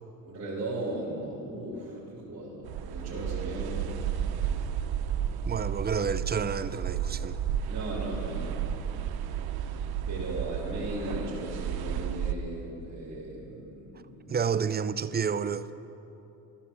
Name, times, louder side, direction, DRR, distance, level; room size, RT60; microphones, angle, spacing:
voice 1, 0.2-3.8 7.7-8.5 9.6-9.8 10.1-14.3, right 1 dB, 45° right, 3.8 m, -37 dB
sound 1, 2.6-12.3, right 9 dB, 70° right, 0.9 m, -32 dB
voice 2, 5.5-7.4 14.3-15.7, right 6 dB, 25° right, 0.5 m, -30 dB
13.5 x 11.5 x 7.2 m
cardioid pair, 95°, 38 cm